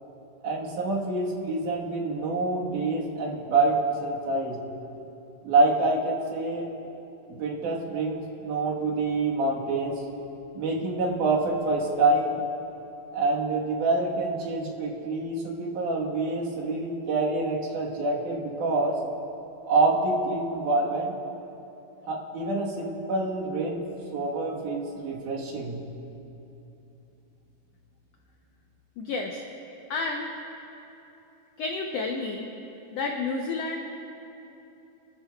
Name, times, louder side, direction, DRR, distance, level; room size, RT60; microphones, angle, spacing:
voice 1, 0.4-4.6 5.4-6.7 7.3-10.0 10.5-12.4 13.1-19.0 19.7-21.2 22.1-23.8 24.1-25.8, right 3 dB, 70° right, -2 dB, 2.8 m, -26 dB
voice 2, 29.0-29.4 29.9-30.3 31.6-32.5 32.9-34.0, left 3 dB, 85° left, 2 dB, 1.4 m, -30 dB
29.0 x 12.0 x 2.3 m, 2.9 s
omnidirectional pair, 3.9 m